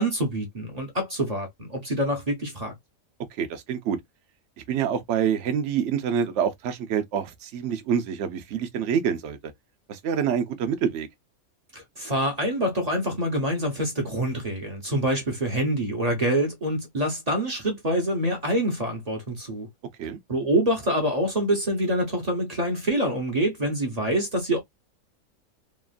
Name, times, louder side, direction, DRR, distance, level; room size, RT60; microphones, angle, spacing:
voice 1, 0.0-2.7 11.7-19.7 20.3-24.6, right 1 dB, 35° right, 0.8 m, -26 dB
voice 2, 3.4-4.0 4.6-9.4 9.9-11.1 20.0-20.2, right 8 dB, 60° right, 0.9 m, -26 dB
3.0 x 2.4 x 2.4 m
omnidirectional pair, 1.5 m